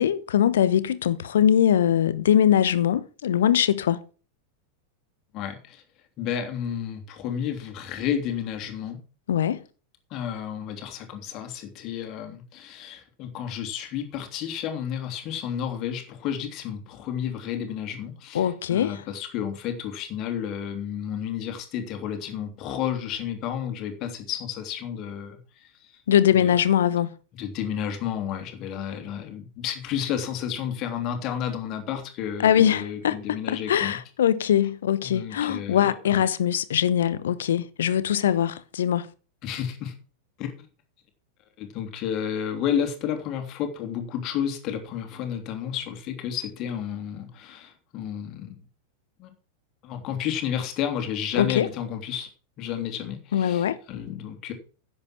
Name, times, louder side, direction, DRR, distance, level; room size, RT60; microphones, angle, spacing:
voice 1, 0.0-4.0 9.3-9.6 18.3-19.0 26.1-27.1 32.4-39.1 51.4-51.7 53.3-53.8, left 10 dB, 60° left, 1.0 m, -22 dB
voice 2, 5.3-5.8 6.2-9.0 10.1-25.7 26.3-26.5 27.4-34.0 35.0-35.8 36.1-36.2 39.4-39.9 40.4-40.5 41.6-48.6 49.2-49.3 49.8-52.3 52.6-54.5, left 9 dB, 35° left, 3.2 m, -31 dB
10.5 x 8.1 x 6.2 m
figure-of-eight pair, 90°, 0 cm